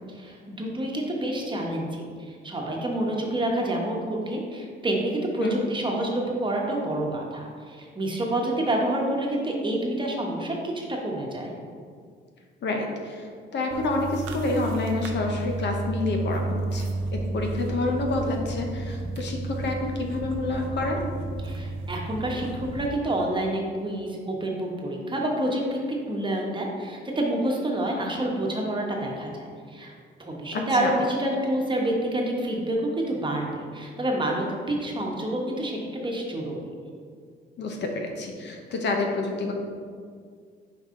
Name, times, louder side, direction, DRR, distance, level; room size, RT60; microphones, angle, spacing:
voice 1, 0.1-11.5 21.4-25.8 26.1-29.9 30.2-33.5 33.7-36.6, right 1 dB, 25° right, -1 dB, 1.1 m, -28 dB
voice 2, 12.6-21.0 30.5-30.9 37.6-39.5, left 2 dB, 60° left, 2 dB, 0.9 m, -28 dB
sound 1, 13.7-22.9, right 3 dB, 85° right, 0.6 m, -32 dB
5.4 x 4.7 x 3.7 m, 2.1 s
cardioid pair, 90°, 20 cm